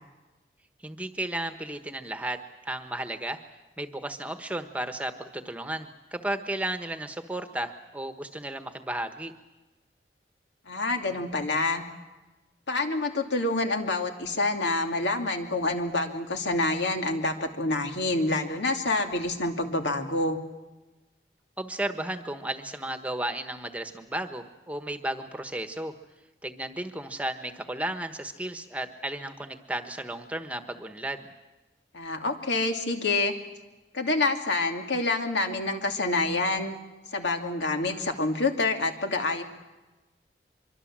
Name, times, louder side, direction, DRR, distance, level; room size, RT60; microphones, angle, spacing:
voice 1, 0.8-3.4 3.8-9.3 21.6-25.9 26.4-31.3, right 1 dB, 10° right, 8 dB, 1.2 m, -34 dB
voice 2, 10.7-11.8 12.7-20.4 31.9-33.3 33.9-36.8 37.1-39.4, left 2 dB, 85° left, 4 dB, 2.6 m, -27 dB
24.5 x 24.5 x 7.5 m, 1.1 s
head